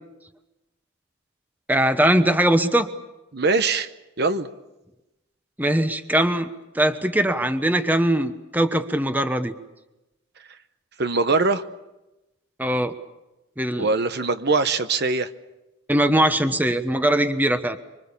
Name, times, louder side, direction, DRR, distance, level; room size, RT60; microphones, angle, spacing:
voice 1, 1.7-2.9 5.6-6.5 6.7-9.5 12.6-12.9 13.6-13.9 15.9-17.8, right 1 dB, 10° right, 9 dB, 1.1 m, -21 dB
voice 2, 3.3-3.9 4.2-4.5 11.0-11.6 13.8-15.3, right 3 dB, 55° right, 10 dB, 1.0 m, -22 dB
25.5 x 25.0 x 7.0 m, 0.99 s
head